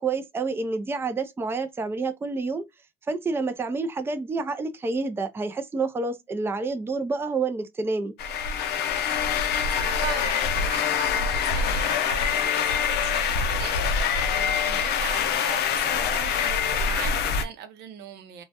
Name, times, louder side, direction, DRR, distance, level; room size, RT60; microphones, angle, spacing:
voice 1, 0.0-2.6 3.0-8.1, right 3 dB, 15° right, 0.4 m, -28 dB
sound 1, 8.2-17.5, left 6 dB, 75° left, 0.5 m, -25 dB
voice 2, 9.3-18.4, right 8 dB, 80° right, 0.6 m, -40 dB
2.2 x 2.0 x 2.7 m
cardioid pair, 110°, 17 cm